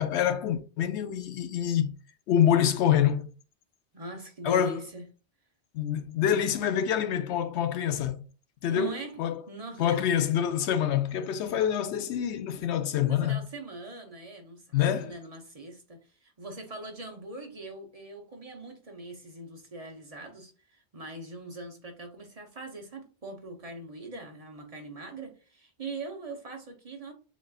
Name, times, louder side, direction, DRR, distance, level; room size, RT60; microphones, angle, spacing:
voice 1, 0.0-1.9 2.3-3.3 4.4-4.8 5.7-8.2 8.6-9.4 9.8-13.4 14.7-15.1, left 9 dB, 85° left, 0.9 m, -26 dB
voice 2, 3.9-5.0 8.7-9.2 9.5-10.0 13.0-27.1, right 2 dB, 35° right, 0.8 m, -41 dB
7.2 x 2.5 x 2.4 m
omnidirectional pair, 1.1 m